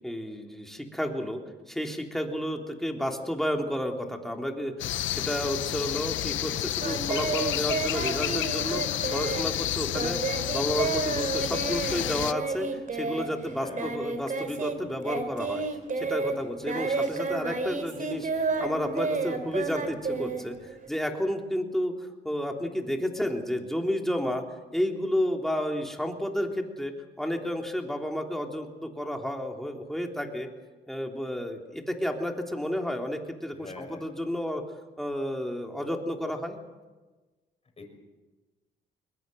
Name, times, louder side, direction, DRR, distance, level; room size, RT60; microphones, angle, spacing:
voice 1, 0.0-1.4 1.7-10.2 10.5-15.6 16.0-24.4 24.7-30.5 30.9-34.6 35.0-36.6, equal, ahead, 2 dB, 3.4 m, -31 dB
sound 1, 4.8-12.3, left 13 dB, 75° left, 0.7 m, -30 dB
Singing, 6.8-14.8 15.0-20.9, right 4 dB, 40° right, 3.5 m, -31 dB
voice 2, 13.5-13.9 19.4-19.5 33.6-34.0 35.7-35.8 37.8-37.9, left 3 dB, 30° left, 4 dB, 5.9 m, -44 dB
21.5 x 21.0 x 7.8 m, 1.2 s
cardioid pair, 90°, 20 cm